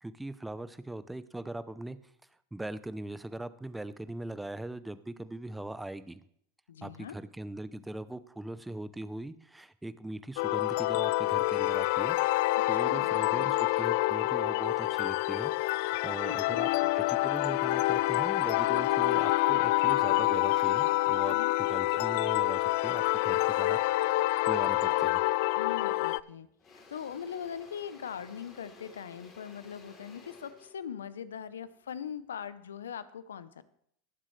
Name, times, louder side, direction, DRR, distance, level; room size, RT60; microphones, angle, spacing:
voice 1, 0.0-2.0 2.5-6.2 6.8-12.2 12.7-23.8 24.5-25.2, right 2 dB, 5° right, 14 dB, 0.7 m, -40 dB
voice 2, 6.7-7.1 12.7-13.5 16.2-16.7 21.3-21.6 25.6-33.6, left 8 dB, 85° left, 15 dB, 0.7 m, -41 dB
sound 1, 10.4-26.2, left 18 dB, 60° left, 0.3 m, -27 dB
Engine / Drill, 25.7-25.9 26.2-32.4, left 4 dB, 30° left, 3.3 m, -55 dB
19.0 x 7.4 x 3.3 m, 0.68 s
hypercardioid pair, 95°, 0 cm